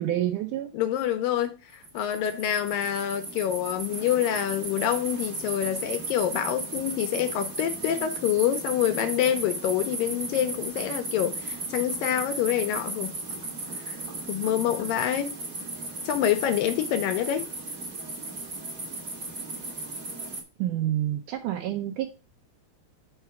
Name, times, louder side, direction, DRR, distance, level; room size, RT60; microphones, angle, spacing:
voice 1, 0.0-0.7 20.6-22.2, right 12 dB, 75° right, 2.0 m, -28 dB
voice 2, 0.7-13.1 13.8-14.0 14.3-15.3 16.1-17.4, left 10 dB, 80° left, 2.2 m, -26 dB
sound 1, 1.7-20.4, right 2 dB, 45° right, 1.1 m, -35 dB
5.8 x 4.6 x 5.8 m
omnidirectional pair, 4.4 m